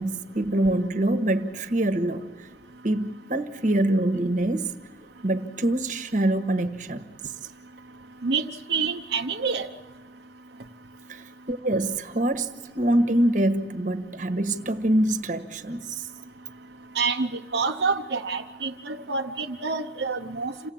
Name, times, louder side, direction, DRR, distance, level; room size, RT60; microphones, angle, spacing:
voice 1, 0.0-2.5 2.8-4.7 5.2-7.0 11.1-12.5 12.7-16.0, right 1 dB, 45° right, 1.4 m, -25 dB
voice 2, 8.2-9.7 16.9-20.7, right 4 dB, 75° right, 0.9 m, -27 dB
28.5 x 17.5 x 8.7 m
head